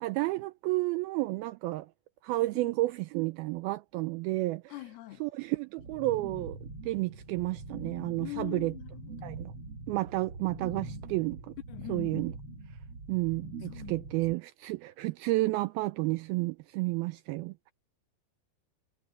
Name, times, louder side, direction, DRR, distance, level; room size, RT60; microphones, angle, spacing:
voice 1, 0.0-1.9 2.2-4.7 5.2-8.7 9.2-9.5 9.9-11.5 11.9-12.3 13.1-17.7, right 20 dB, 85° right, 2.2 m, -31 dB
voice 2, 4.7-5.2 8.2-9.3 11.7-12.3 13.7-14.0, left 17 dB, 75° left, 2.9 m, -42 dB
sound 1, 5.8-14.3, right 2 dB, 40° right, 2.6 m, -43 dB
omnidirectional pair, 4.8 m